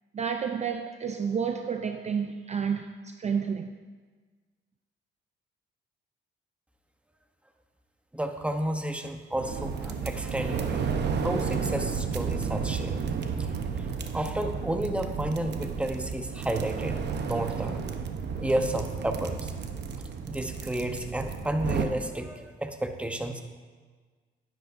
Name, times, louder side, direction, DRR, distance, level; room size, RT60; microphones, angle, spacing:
voice 1, 0.1-3.7, right 6 dB, 35° right, 0.5 m, -30 dB
voice 2, 8.1-10.9 11.2-13.0 14.1-17.0 17.3-17.8 18.4-19.5 20.3-23.4, right 1 dB, 5° right, 0.8 m, -31 dB
sound 1, 9.3-21.9, right 6 dB, 60° right, 0.8 m, -32 dB
11.0 x 10.5 x 2.6 m
cardioid pair, 90°, 20 cm